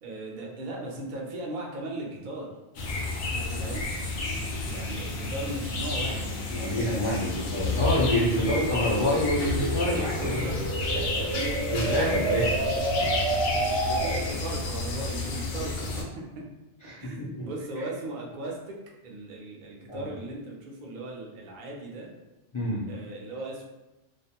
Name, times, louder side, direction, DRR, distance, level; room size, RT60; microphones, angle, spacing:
voice 1, 0.0-2.5 3.6-3.9 4.6-6.3 9.9-10.6 10.9-13.1 13.5-13.6 13.9-16.0 16.3-16.4 17.0-18.8 19.0-22.1 22.9-23.6, right 2 dB, 55° right, -2 dB, 0.6 m, -37 dB
sound 1, 2.8-16.0, left 3 dB, 70° left, 0.8 m, -31 dB
sound 2, 3.7-14.4, right 3 dB, 80° right, 0.9 m, -32 dB
voice 2, 6.5-10.4 11.7-12.5 16.9-17.5 19.9-20.1 22.5-22.9, left 1 dB, 45° left, -8 dB, 0.4 m, -27 dB
2.4 x 2.1 x 2.8 m, 1.0 s
omnidirectional pair, 1.2 m